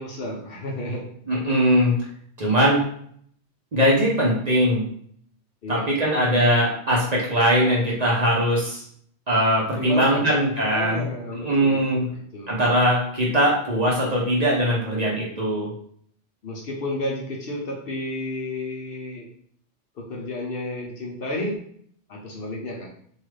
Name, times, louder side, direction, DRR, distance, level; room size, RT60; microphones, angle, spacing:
voice 1, 0.0-1.1 5.6-5.9 9.7-10.4 10.7-12.5 16.4-19.3 20.0-21.6 22.1-22.9, left 1 dB, 60° left, -1 dB, 0.8 m, -32 dB
voice 2, 1.3-2.0 2.4-2.9 3.7-4.9 5.7-8.8 9.3-11.1 11.4-12.1 12.5-15.7, equal, 40° right, -5 dB, 0.7 m, -21 dB
3.1 x 2.3 x 3.2 m, 0.62 s
omnidirectional pair, 1.2 m